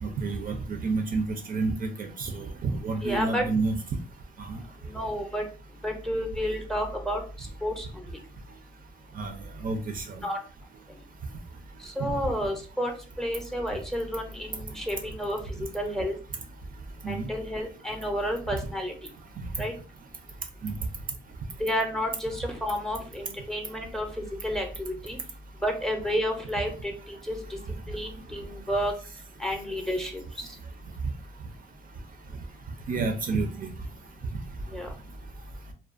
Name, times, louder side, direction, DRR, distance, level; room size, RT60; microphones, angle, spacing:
voice 1, 0.0-3.8 4.4-4.6 9.2-9.3 9.6-10.0 17.0-17.2 18.5-18.6 20.6-20.8 32.9-33.7, right 3 dB, 45° right, 5 dB, 0.4 m, -29 dB
voice 2, 3.0-3.5 4.9-5.4 5.8-7.2 7.6-8.2 10.2-10.4 11.8-12.9 13.2-15.4 15.7-16.2 17.1-18.9 19.6-19.7 21.6-24.1 24.4-25.2 25.6-27.4 27.9-28.9 29.4-30.2 34.7-34.9, equal, ahead, 3 dB, 0.6 m, -30 dB
2.4 x 2.2 x 2.4 m, 0.37 s
cardioid pair, 90°, 20 cm